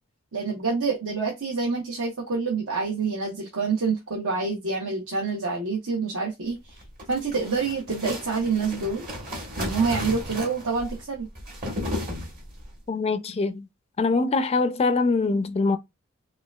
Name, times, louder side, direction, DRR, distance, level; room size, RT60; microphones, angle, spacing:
voice 1, 0.3-6.7 7.1-9.1 9.6-11.3, right 4 dB, 70° right, 1.0 m, -27 dB
sound 1, 6.7-12.7, left 1 dB, 40° right, 1.3 m, -34 dB
voice 2, 12.9-13.6 14.0-15.8, left 3 dB, 30° left, 0.4 m, -23 dB
4.8 x 2.2 x 2.3 m
head